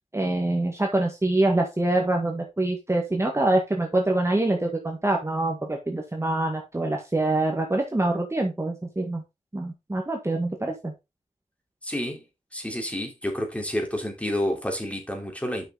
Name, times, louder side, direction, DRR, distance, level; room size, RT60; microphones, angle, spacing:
voice 1, 0.1-9.2 9.5-10.9, right 2 dB, 20° right, 1.7 m, -25 dB
voice 2, 11.8-12.2 12.5-15.6, left 1 dB, 10° left, 3.2 m, -29 dB
7.7 x 6.1 x 4.0 m
wide cardioid pair, 75°, 13 cm